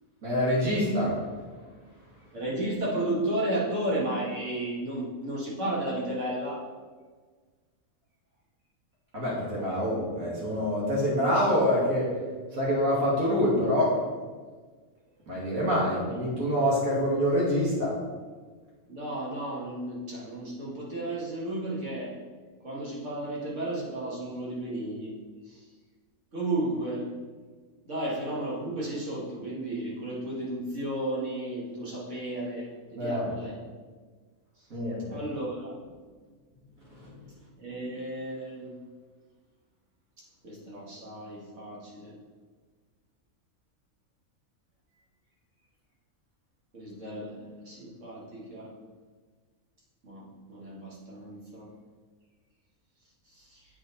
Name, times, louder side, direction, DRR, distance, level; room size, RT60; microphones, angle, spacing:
voice 1, 0.2-1.1 9.1-12.1 12.5-13.9 15.3-17.9 32.9-33.3 34.7-35.2, equal, 75° right, -6 dB, 2.6 m, -26 dB
voice 2, 2.3-6.6 16.0-16.1 18.9-22.1 22.6-25.1 25.5-25.6 26.3-27.1 27.9-33.6 35.1-35.8 37.6-38.7 40.4-42.1 46.7-48.7 50.0-51.7 53.3-53.7, right 1 dB, 60° right, -5 dB, 2.1 m, -33 dB
8.1 x 4.8 x 4.1 m, 1.5 s
omnidirectional pair, 1.4 m